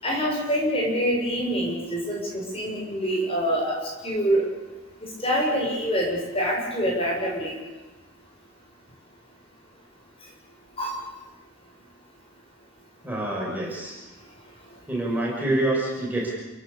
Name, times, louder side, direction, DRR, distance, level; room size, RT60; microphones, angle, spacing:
voice 1, 0.0-4.5 5.2-7.6 10.8-11.0, equal, 25° left, -2 dB, 7.1 m, -25 dB
voice 2, 13.0-14.0 14.9-16.3, right 1 dB, 10° right, -3 dB, 6.5 m, -26 dB
29.5 x 17.0 x 8.7 m, 1.2 s
head